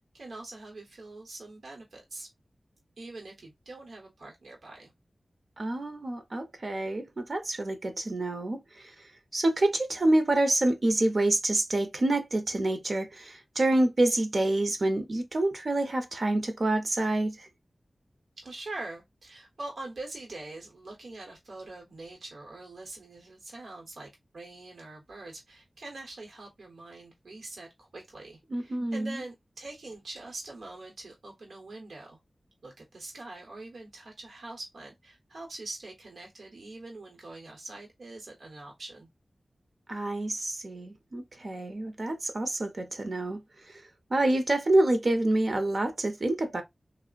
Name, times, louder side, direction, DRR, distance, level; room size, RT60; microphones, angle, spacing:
voice 1, 0.1-2.3 3.0-4.9 18.4-32.2 32.6-39.1, right 2 dB, 90° right, 0.8 m, -44 dB
voice 2, 5.6-8.9 9.3-17.5 28.5-29.2 39.9-43.4 44.1-46.6, right 1 dB, 60° right, 0.6 m, -27 dB
3.0 x 2.0 x 2.3 m
wide cardioid pair, 55°, 0 cm